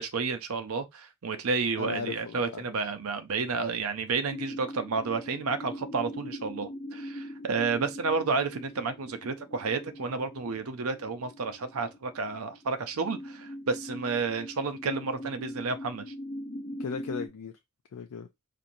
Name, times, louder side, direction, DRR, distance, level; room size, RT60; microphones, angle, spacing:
voice 1, 0.0-16.1, right 4 dB, 75° right, 0.6 m, -31 dB
voice 2, 1.8-2.7 16.8-17.5 17.9-18.3, left 5 dB, 85° left, 0.4 m, -37 dB
sound 1, 4.3-17.3, left 1 dB, 30° left, 0.6 m, -42 dB
4.4 x 2.6 x 2.6 m
head